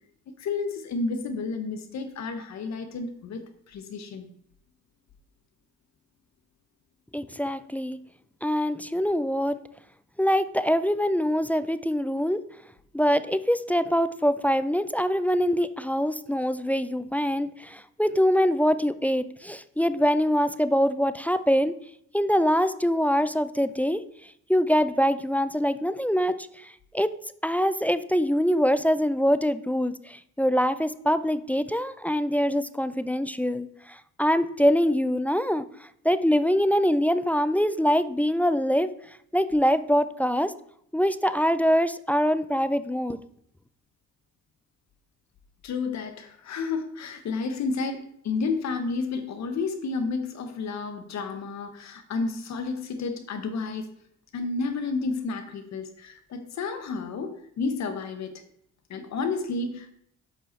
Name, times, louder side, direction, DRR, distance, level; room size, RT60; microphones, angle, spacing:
voice 1, 0.4-3.4 3.7-4.3 45.6-53.9 54.3-58.3 58.9-59.9, left 4 dB, 65° left, 7 dB, 1.0 m, -31 dB
voice 2, 7.1-8.0 8.4-9.6 10.2-12.4 12.9-21.7 22.1-24.0 24.5-27.1 27.4-38.9 39.3-40.5 40.9-43.2, equal, 5° left, 13 dB, 0.3 m, -24 dB
7.6 x 5.4 x 4.3 m, 0.69 s
cardioid pair, 90°, 30 cm